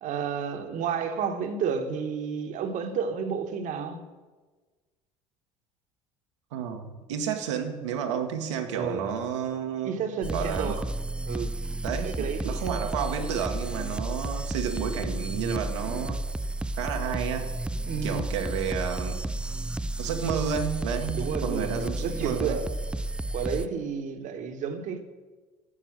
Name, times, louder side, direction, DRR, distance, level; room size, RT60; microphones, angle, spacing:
voice 1, 0.0-4.0 8.7-9.1 9.8-10.8 11.2-11.5 12.0-12.6 17.8-18.3 21.1-22.7 23.3-25.0, right 6 dB, 60° right, 7 dB, 1.3 m, -31 dB
voice 2, 6.5-10.0 10.3-10.8 11.8-16.2 16.8-17.5 18.0-19.2 20.0-22.6, right 7 dB, 85° right, 5 dB, 1.1 m, -31 dB
sound 1, 10.2-23.7, right 2 dB, 5° right, 0.4 m, -32 dB
9.9 x 6.7 x 7.5 m, 1.3 s
hypercardioid pair, 70°, 15 cm